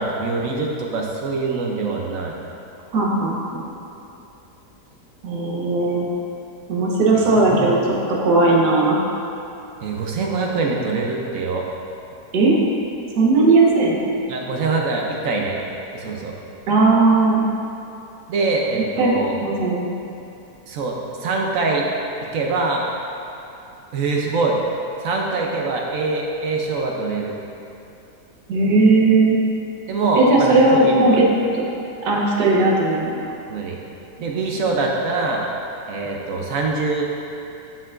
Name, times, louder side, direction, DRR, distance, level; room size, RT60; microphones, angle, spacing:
voice 1, 0.0-2.3 7.4-7.8 9.8-11.6 14.3-15.6 15.9-16.3 18.3-19.4 20.7-21.9 22.3-22.9 23.9-24.6 25.0-27.3 29.9-31.2 33.5-33.8 34.2-35.4 35.9-37.0, right 3 dB, 65° right, 0 dB, 0.9 m, -23 dB
voice 2, 2.9-3.6 5.2-6.1 6.7-7.8 8.2-9.0 12.3-12.6 13.2-14.1 16.7-17.4 19.0-19.9 28.5-29.4 30.1-31.3 31.5-31.7 32.0-33.1, right 3 dB, 80° right, -3 dB, 1.6 m, -17 dB
7.5 x 6.7 x 2.5 m, 2.8 s
omnidirectional pair, 1.8 m